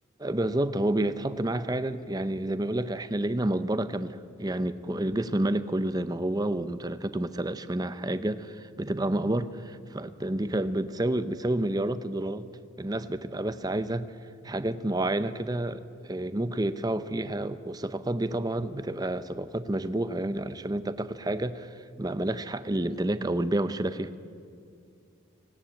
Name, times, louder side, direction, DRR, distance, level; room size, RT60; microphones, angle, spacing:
voice 1, 0.2-12.4 12.8-14.1 14.4-24.1, right 1 dB, 20° right, 12 dB, 0.6 m, -29 dB
18.5 x 17.0 x 8.8 m, 2.4 s
head